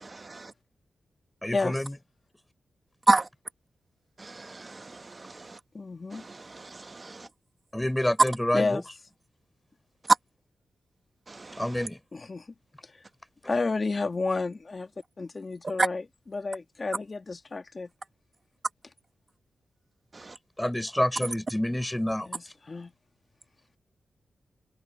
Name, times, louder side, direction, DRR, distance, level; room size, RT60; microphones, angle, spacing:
voice 1, 0.0-0.5 3.1-3.3 4.2-5.3 6.2-7.3 11.3-11.6 20.2-20.3, right 3 dB, 30° right, 1.1 m, -30 dB
voice 2, 1.4-2.0 7.7-8.8 11.6-12.0 20.6-22.3, left 1 dB, 5° left, 4.1 m, -28 dB
voice 3, 5.7-6.2 8.5-8.8 12.1-12.5 13.5-14.9 15.2-17.9 22.3-22.4 22.7-22.9, left 3 dB, 35° left, 1.8 m, -31 dB
cardioid pair, 90°, 0 cm